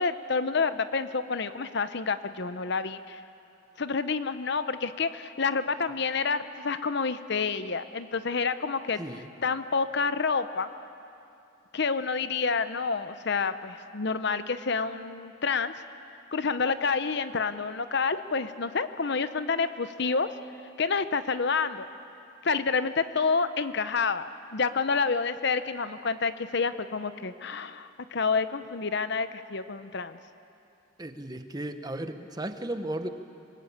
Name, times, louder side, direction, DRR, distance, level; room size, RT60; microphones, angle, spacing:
voice 1, 0.0-3.2 3.8-9.0 9.4-10.7 11.7-15.7 16.3-20.3 20.8-21.9 22.4-24.3 24.5-30.2, left 4 dB, 55° left, 12 dB, 0.8 m, -28 dB
voice 2, 31.0-33.1, right 1 dB, 20° right, 8 dB, 1.0 m, -35 dB
26.5 x 20.5 x 8.6 m, 2.7 s
head